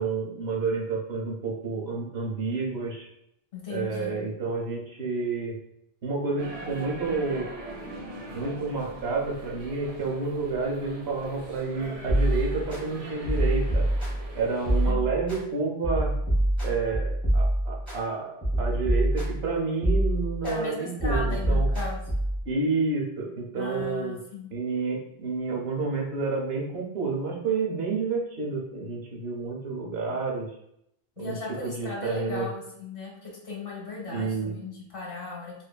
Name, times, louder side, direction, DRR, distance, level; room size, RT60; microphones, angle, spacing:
voice 1, 0.0-3.1 3.7-5.6 6.0-7.5 8.3-13.9 14.3-16.1 16.6-21.7 22.5-24.2 24.5-30.6 31.2-31.4 31.6-32.5 34.0-34.6, right 4 dB, 90° right, -1 dB, 0.9 m, -29 dB
voice 2, 3.5-4.2 14.8-15.0 20.4-22.0 23.5-24.5 31.2-35.5, left 3 dB, 65° left, -3 dB, 1.2 m, -37 dB
sound 1, 6.4-14.9, right 2 dB, 50° right, 0.4 m, -42 dB
sound 2, 12.1-12.8 13.2-14.3 14.7-15.4 15.8-18.0 18.4-19.5 19.8-20.6 21.0-22.4, right 1 dB, ahead, 1.0 m, -25 dB
2.7 x 2.4 x 2.2 m, 0.78 s
omnidirectional pair, 1.0 m